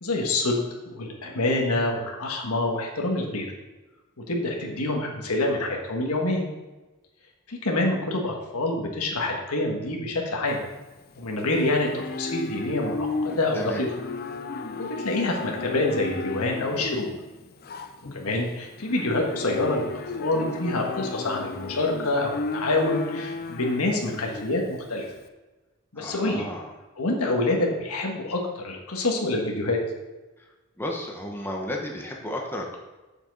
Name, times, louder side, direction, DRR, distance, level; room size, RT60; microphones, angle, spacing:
voice 1, 0.0-3.5 4.3-6.5 7.5-10.6 11.2-13.9 14.8-17.1 18.1-19.9 20.2-25.0 25.9-26.4 27.0-29.8, left 2 dB, 90° left, 0 dB, 1.5 m, -26 dB
Livestock farm animals working animals, 10.5-25.2, left 3 dB, 45° left, 0.6 m, -34 dB
voice 2, 26.0-26.7 30.4-30.5 30.8-32.8, left 1 dB, 10° left, 0 dB, 1.1 m, -33 dB
7.3 x 7.0 x 4.1 m, 1.1 s
head